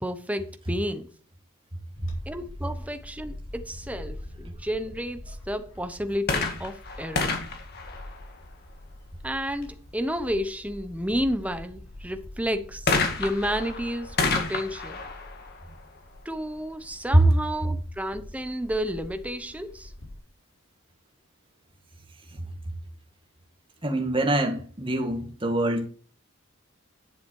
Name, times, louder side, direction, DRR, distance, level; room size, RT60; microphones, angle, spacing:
voice 1, 0.0-1.1 2.3-7.3 9.2-12.9 13.2-15.0 16.2-19.9, equal, 5° right, 0.9 m, -31 dB
Bird / Wind, 1.9-20.2, left 1 dB, 65° left, 3.9 m, -45 dB
sound 1, 6.2-8.8 12.9-16.5 17.3-17.4, left 3 dB, 45° left, 2.1 m, -30 dB
voice 2, 23.8-25.9, right 1 dB, 25° right, 1.9 m, -23 dB
10.5 x 7.2 x 4.7 m
head